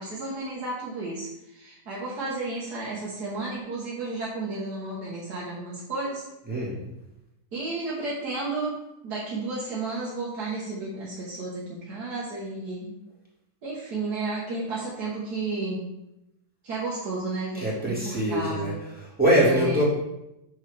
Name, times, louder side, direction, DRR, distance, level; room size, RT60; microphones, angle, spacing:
voice 1, 0.0-6.2 7.5-8.8 9.0-12.9 13.6-15.9 16.6-18.8 19.4-19.8, right 3 dB, 75° right, -7 dB, 1.9 m, -32 dB
voice 2, 6.4-6.8 17.5-19.8, right 1 dB, 5° right, -7 dB, 1.9 m, -24 dB
6.6 x 5.8 x 3.4 m, 0.88 s
omnidirectional pair, 1.7 m